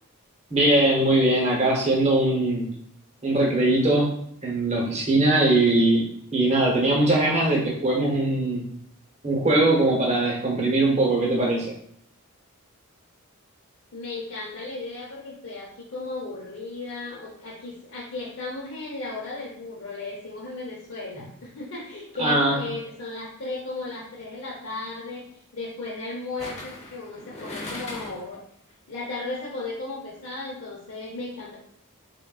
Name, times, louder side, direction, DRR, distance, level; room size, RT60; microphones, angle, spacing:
voice 1, 0.5-2.7 3.2-4.1 4.4-6.1 6.3-8.6 9.2-11.7 22.2-22.6, right 2 dB, 30° right, -1 dB, 0.9 m, -21 dB
voice 2, 13.9-25.2 25.5-28.4 28.9-31.6, left 3 dB, 60° left, -6 dB, 0.8 m, -35 dB
sound 1, 23.8-24.1 26.4-28.4 28.7-28.8, left 2 dB, 30° left, 0.8 m, -38 dB
3.7 x 3.6 x 2.3 m, 0.67 s
head